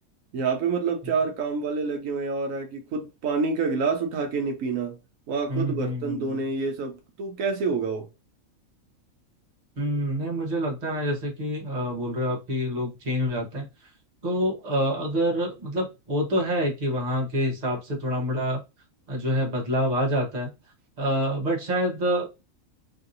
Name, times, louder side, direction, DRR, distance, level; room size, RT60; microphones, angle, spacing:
voice 1, 0.3-5.0 5.3-8.1, right 4 dB, 75° right, 1.0 m, -27 dB
voice 2, 5.5-6.4 9.8-13.7 14.2-18.6 19.1-20.5 21.0-22.4, equal, 35° right, 1.0 m, -27 dB
3.1 x 2.6 x 2.5 m
omnidirectional pair, 1.4 m